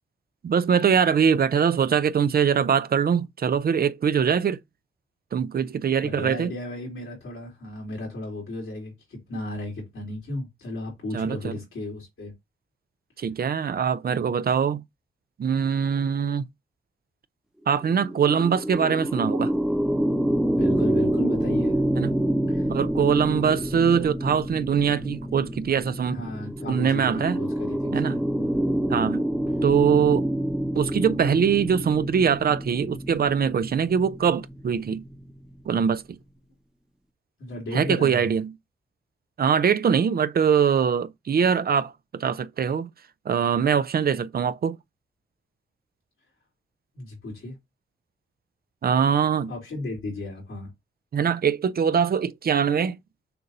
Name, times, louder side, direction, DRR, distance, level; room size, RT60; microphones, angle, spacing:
voice 1, 0.4-4.6 5.3-6.5 11.1-11.5 13.2-14.8 15.4-16.4 17.7-19.5 21.9-22.1 22.7-26.2 26.7-27.4 27.9-28.2 28.9-29.2 29.6-30.3 30.7-35.0 35.7-36.2 37.7-38.5 39.4-42.9 43.3-44.8 48.8-49.5 51.1-53.0, right 7 dB, 50° right, 0.4 m, -22 dB
voice 2, 6.0-12.3 20.5-21.7 22.5-22.7 26.0-28.6 37.4-38.3 46.9-47.6 49.5-50.7, left 1 dB, 85° left, 3.2 m, -35 dB
sound 1, 17.7-35.2, right 1 dB, 5° right, 0.8 m, -27 dB
6.7 x 2.6 x 5.3 m
wide cardioid pair, 155°, 20 cm